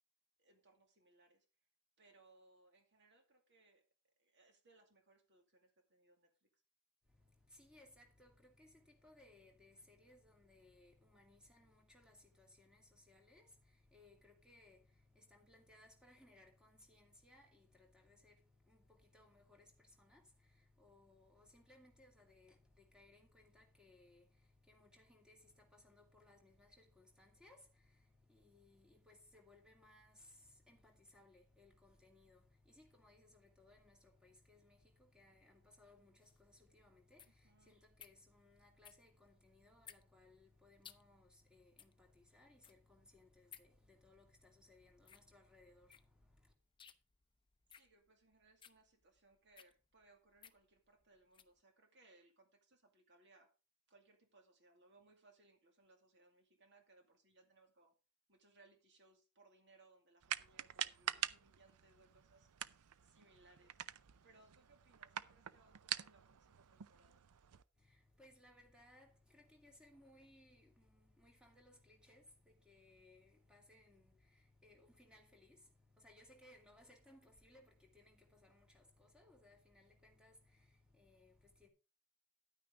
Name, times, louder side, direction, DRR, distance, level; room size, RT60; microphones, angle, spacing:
voice 1, 0.4-1.5 2.0-3.8 4.2-6.5 37.4-37.8 47.7-53.5 53.9-57.9 58.3-62.5 63.0-63.8 64.2-67.2, right 2 dB, 50° right, 2.4 m, -69 dB
voice 2, 7.0-46.5 67.7-81.7, left 2 dB, 5° right, 2.4 m, -66 dB
sound 1, 36.2-51.6, left 8 dB, 20° left, 0.6 m, -63 dB
sound 2, 60.2-67.6, right 11 dB, 85° right, 0.5 m, -46 dB
10.5 x 9.4 x 3.7 m
head